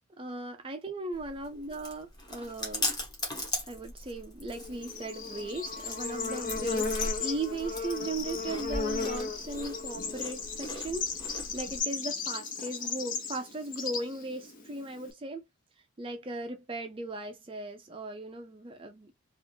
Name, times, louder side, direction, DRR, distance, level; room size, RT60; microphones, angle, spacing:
voice 1, 0.2-3.0 3.6-15.4 16.0-19.1, right 2 dB, 25° right, 0.4 m, -38 dB
Chewing mastication, 1.1-11.8, left 1 dB, 20° left, 1.1 m, -39 dB
Bird / Insect, 4.5-15.1, left 4 dB, 40° left, 0.7 m, -35 dB
3.5 x 2.5 x 2.7 m
head